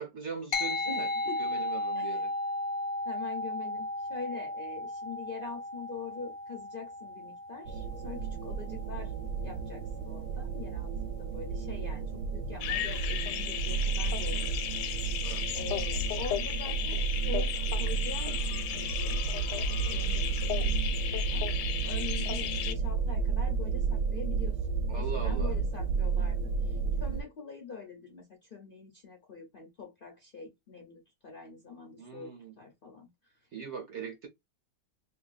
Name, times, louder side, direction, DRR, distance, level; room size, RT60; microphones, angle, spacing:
voice 1, 0.0-1.1 1.4-2.3 15.2-15.5 24.9-25.6 32.0-32.5 33.5-34.3, right 6 dB, 55° right, 0.8 m, -40 dB
sound 1, 0.5-10.2, left 2 dB, 70° left, 0.9 m, -36 dB
voice 2, 0.9-1.6 1.9-2.2 3.0-9.1 9.4-14.5 15.0-19.4 19.8-21.5 21.8-33.5, left 5 dB, 55° left, 0.6 m, -44 dB
sound 2, 7.7-27.2, right 5 dB, 75° right, 1.1 m, -32 dB
sound 3, 12.6-22.7, left 10 dB, 85° left, 1.2 m, -35 dB
2.8 x 2.7 x 3.9 m
omnidirectional pair, 1.8 m